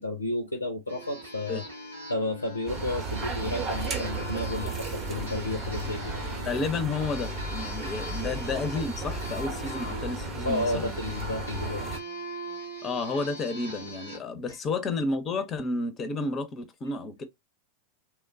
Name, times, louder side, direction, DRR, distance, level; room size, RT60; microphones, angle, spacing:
voice 1, 0.0-1.6 2.1-6.1 8.2-8.3 10.5-11.9, left 1 dB, 80° left, 0.4 m, -32 dB
sound 1, 0.9-14.2, equal, 85° right, 1.2 m, -41 dB
sound 2, 2.7-12.0, right 3 dB, 30° right, 0.8 m, -34 dB
voice 2, 6.5-11.0 12.8-17.2, left 3 dB, 25° left, 0.5 m, -31 dB
3.0 x 2.2 x 2.4 m
figure-of-eight pair, 90°, 0 cm